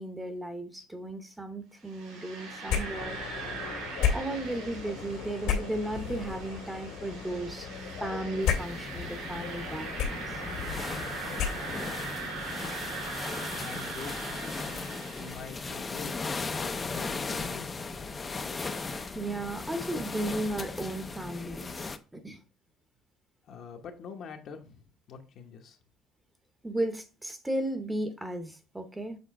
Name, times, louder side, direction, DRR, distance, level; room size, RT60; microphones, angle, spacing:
voice 1, 0.0-3.2 4.1-7.7 8.0-10.4 19.1-22.4 26.6-29.2, right 1 dB, 10° right, 0.8 m, -35 dB
sound 1, 1.8-15.8, right 3 dB, 90° right, 3.3 m, -40 dB
sound 2, 2.7-12.0, left 8 dB, 80° left, 1.9 m, -34 dB
sound 3, 8.4-22.0, left 4 dB, 20° left, 0.5 m, -37 dB
voice 2, 13.6-18.4 23.5-24.8 25.1-25.8, left 6 dB, 55° left, 1.0 m, -45 dB
7.0 x 3.8 x 3.7 m
cardioid pair, 125°, 0 cm